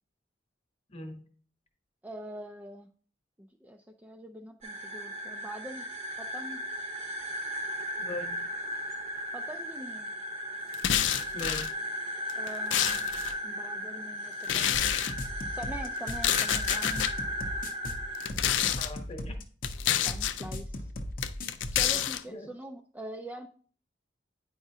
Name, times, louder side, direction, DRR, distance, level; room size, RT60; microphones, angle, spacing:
voice 1, 0.9-1.2 8.0-8.4 11.3-11.7 18.8-19.4 22.3-22.5, left 1 dB, 35° left, 5 dB, 1.0 m, -40 dB
voice 2, 2.0-2.9 3.4-5.9 6.2-6.6 9.3-10.1 12.4-13.1 13.4-15.2 15.5-17.1 20.0-20.9 21.7-23.5, right 1 dB, 10° right, 4 dB, 0.3 m, -43 dB
sound 1, 4.6-18.3, equal, 35° right, 0.9 m, -36 dB
sound 2, 10.7-11.7 12.3-13.3 14.4-15.1 16.1-17.1 18.1-18.9 19.6-20.4 21.2-22.2, left 11 dB, 90° left, 0.4 m, -28 dB
sound 3, 14.7-21.8, left 1 dB, 50° left, 0.7 m, -37 dB
8.9 x 4.8 x 2.7 m, 0.43 s
head